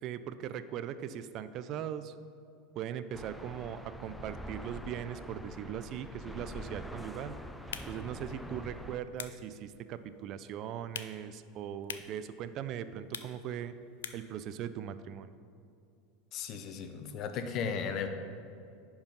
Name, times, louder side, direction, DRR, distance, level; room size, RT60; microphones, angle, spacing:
voice 1, 0.0-2.1 2.8-7.4 7.9-13.7 14.1-15.3, right 9 dB, 50° right, 12 dB, 0.5 m, -40 dB
sound 1, 3.1-9.0, equal, 5° left, 0.6 m, -45 dB
sound 2, 7.5-14.4, left 8 dB, 85° left, 0.5 m, -48 dB
voice 2, 16.3-18.1, left 6 dB, 50° left, 7 dB, 0.9 m, -35 dB
10.5 x 4.8 x 5.5 m, 2.5 s
hypercardioid pair, 90°, 0 cm